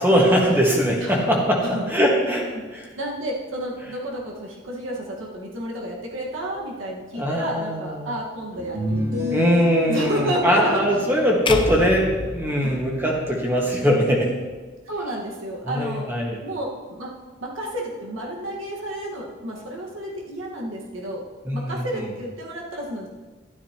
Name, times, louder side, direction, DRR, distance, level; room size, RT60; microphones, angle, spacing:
voice 1, 0.0-2.9 7.1-8.1 9.3-14.3 15.7-16.4 21.4-21.8, equal, 10° right, -2 dB, 1.6 m, -21 dB
voice 2, 1.6-2.0 2.5-2.6 3.0-9.4 9.9-10.8 12.6-12.8 14.9-16.1 16.4-17.1 17.4-21.3 21.5-23.1, right 1 dB, 75° right, -3 dB, 1.6 m, -31 dB
sound 1, 8.5-13.8, left 3 dB, 45° right, 3.1 m, -31 dB
sound 2, 11.5-13.7, left 3 dB, 25° left, 0.5 m, -29 dB
12.5 x 12.0 x 3.0 m, 1.3 s
head